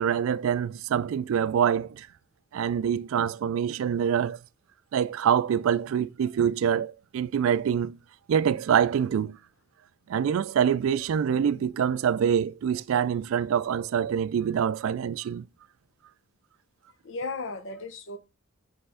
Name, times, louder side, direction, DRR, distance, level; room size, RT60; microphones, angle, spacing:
voice 1, 0.0-2.1 2.5-4.4 4.9-8.0 8.3-9.4 10.1-15.4, right 8 dB, 85° right, 0.3 m, -25 dB
voice 2, 17.0-18.2, left 3 dB, 70° left, 0.9 m, -36 dB
5.4 x 3.4 x 5.5 m
head